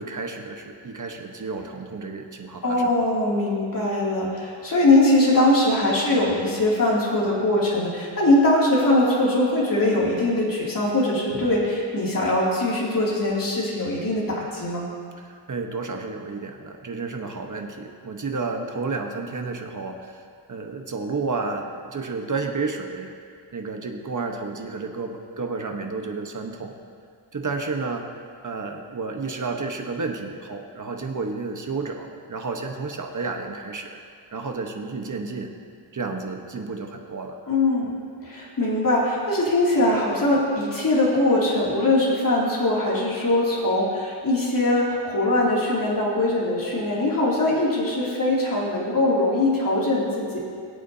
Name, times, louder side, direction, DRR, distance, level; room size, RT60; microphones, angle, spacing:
voice 1, 0.0-2.9 15.2-20.2 20.5-23.1 23.5-26.7 27.3-28.1 28.4-34.0 34.3-35.5 35.9-37.4, right 4 dB, 40° right, 3 dB, 1.1 m, -31 dB
voice 2, 2.6-14.9 37.5-37.9 38.2-50.4, left 1 dB, 45° left, -5 dB, 2.7 m, -21 dB
21.0 x 8.5 x 2.8 m, 2.2 s
wide cardioid pair, 120°, 48 cm